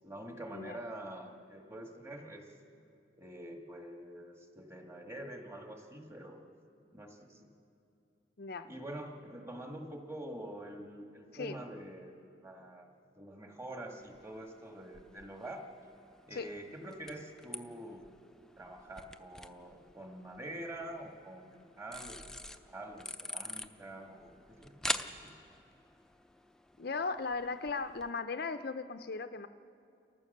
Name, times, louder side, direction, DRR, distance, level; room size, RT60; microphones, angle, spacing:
voice 1, 0.0-2.5 3.2-6.4 6.9-7.5 8.6-12.1 12.4-12.9 13.2-15.6 16.3-18.0 18.6-25.3, right 1 dB, 15° right, 2 dB, 1.7 m, -46 dB
voice 2, 8.4-8.7 11.3-11.6 16.3-16.5 26.8-29.5, left 4 dB, 55° left, 10 dB, 0.5 m, -37 dB
sound 1, 14.0-28.1, left 1 dB, 5° left, 0.5 m, -46 dB
30.0 x 14.5 x 6.6 m, 2.7 s
head